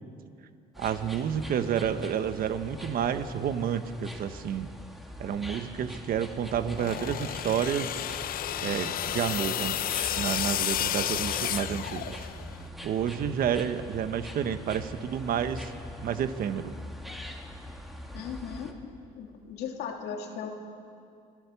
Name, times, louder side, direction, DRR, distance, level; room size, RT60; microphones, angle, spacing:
sound 1, 0.7-18.7, left 1 dB, ahead, 2.3 m, -43 dB
voice 1, 0.8-4.7 5.2-8.0 8.6-9.8 10.2-12.2 12.8-15.7 16.0-16.7, right 8 dB, 60° right, 10 dB, 1.2 m, -30 dB
sound 2, 6.7-12.5, left 11 dB, 60° left, 0.7 m, -31 dB
voice 2, 18.1-18.9 19.2-20.5, left 7 dB, 75° left, 2 dB, 2.7 m, -37 dB
26.0 x 16.5 x 7.1 m, 2.4 s
cardioid pair, 110°, 17 cm